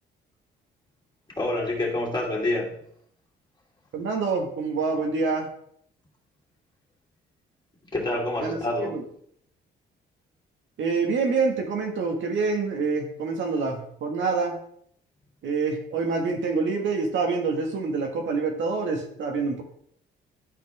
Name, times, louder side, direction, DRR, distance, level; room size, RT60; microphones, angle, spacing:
voice 1, 1.4-2.7 7.9-9.0, left 1 dB, 20° left, -3 dB, 2.6 m, -27 dB
voice 2, 3.9-5.5 8.4-9.0 10.8-14.6 15.4-19.6, right 4 dB, 70° right, 1 dB, 1.8 m, -26 dB
12.0 x 4.3 x 3.6 m, 0.67 s
cardioid pair, 90°, 20 cm